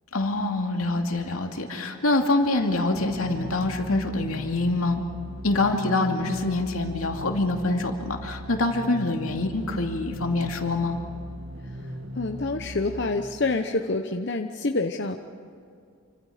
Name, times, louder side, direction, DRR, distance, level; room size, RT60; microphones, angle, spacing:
voice 1, 0.1-5.0 5.4-11.0, left 2 dB, 85° left, 3 dB, 2.6 m, -25 dB
sound 1, 2.9-13.7, equal, 65° right, 1.5 m, -39 dB
voice 2, 12.1-15.2, left 3 dB, 55° left, 5 dB, 0.9 m, -27 dB
28.5 x 25.5 x 5.1 m, 2.4 s
head